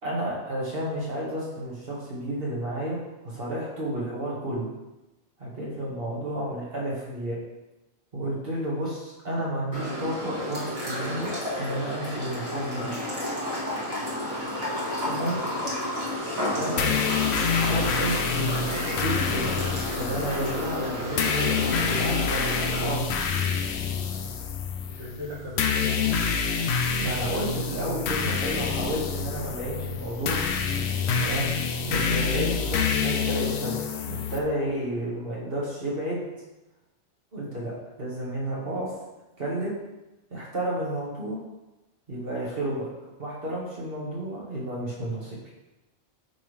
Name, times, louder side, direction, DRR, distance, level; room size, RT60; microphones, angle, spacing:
voice 1, 0.0-4.7 5.4-7.4 8.1-12.9 15.0-15.4 16.6-17.0 17.6-18.2 19.0-19.6 20.0-22.5 22.8-23.1 27.0-30.4 31.2-31.4 31.9-33.8 34.0-36.2 37.3-37.7 38.0-38.9 39.4-39.7 40.3-41.4 42.1-42.9 43.2-45.4, right 1 dB, 55° right, -5 dB, 1.9 m, -31 dB
sound 1, 9.7-22.9, left 1 dB, 35° right, 1.6 m, -31 dB
voice 2, 16.4-17.0 17.8-18.7 24.9-26.5 31.0-31.4, equal, 75° right, -6 dB, 1.5 m, -40 dB
sound 2, 16.8-34.4, left 6 dB, 70° left, 0.8 m, -27 dB
8.5 x 3.5 x 3.3 m, 1.0 s
omnidirectional pair, 1.2 m